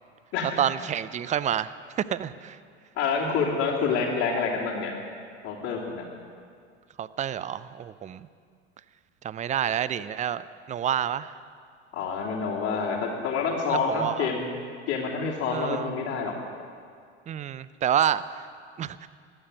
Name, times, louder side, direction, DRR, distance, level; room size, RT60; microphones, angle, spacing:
voice 1, 0.6-1.7 2.1-2.6 7.0-8.3 9.2-10.4 10.7-11.4 13.7-14.3 15.5-15.9 17.3-18.5 18.8-19.1, right 9 dB, 20° right, 15 dB, 0.5 m, -28 dB
voice 2, 3.0-4.9 5.4-6.0 11.9-14.5 14.9-16.3, left 5 dB, 45° left, -6 dB, 2.9 m, -27 dB
15.0 x 11.0 x 6.6 m, 2.1 s
hypercardioid pair, 85°, 34 cm